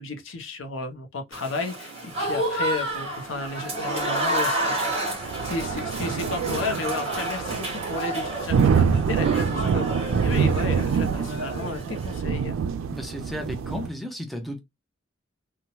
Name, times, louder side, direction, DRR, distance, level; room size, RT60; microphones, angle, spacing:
voice 1, 0.0-4.9 5.4-12.6, left 3 dB, 70° left, 0.6 m, -33 dB
Applause / Crowd, 1.3-12.2, right 1 dB, 30° right, 1.2 m, -30 dB
sound 1, 5.1-13.9, right 6 dB, 85° right, 0.3 m, -26 dB
voice 2, 12.9-14.6, left 1 dB, ahead, 0.4 m, -34 dB
2.7 x 2.1 x 2.9 m
head